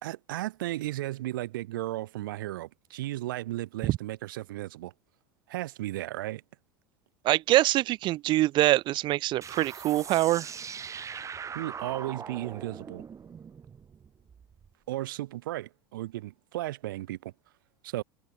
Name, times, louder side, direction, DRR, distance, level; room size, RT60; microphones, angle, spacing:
voice 1, 0.0-4.9 5.5-6.4 11.5-13.0 14.9-17.3 17.8-18.0, right 16 dB, 70° right, 3.0 m, -35 dB
voice 2, 7.2-10.5, right 16 dB, 45° right, 0.6 m, -24 dB
sound 1, 9.4-14.7, right 7 dB, 25° right, 3.5 m, -41 dB
hypercardioid pair, 80°, 11 cm